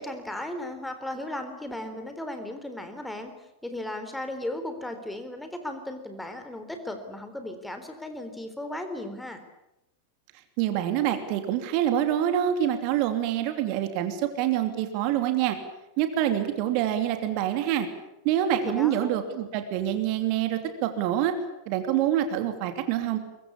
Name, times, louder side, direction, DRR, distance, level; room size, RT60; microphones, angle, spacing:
voice 1, 0.0-3.3 3.6-9.4 18.6-19.1, left 1 dB, 5° left, 7 dB, 3.8 m, -36 dB
voice 2, 10.6-15.6 16.0-17.9 18.2-21.3 21.7-23.2, right 11 dB, 45° right, 8 dB, 2.8 m, -26 dB
23.0 x 23.0 x 8.5 m, 0.91 s
figure-of-eight pair, 90°, 0 cm